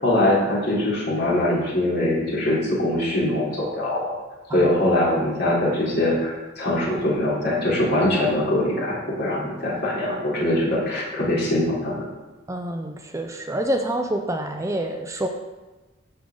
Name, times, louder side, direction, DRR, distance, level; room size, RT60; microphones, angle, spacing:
voice 1, 0.0-4.1 4.5-12.0, left 1 dB, 55° left, -6 dB, 3.5 m, -22 dB
voice 2, 12.5-15.3, right 1 dB, 15° right, 4 dB, 0.6 m, -27 dB
15.0 x 5.5 x 3.8 m, 1.2 s
head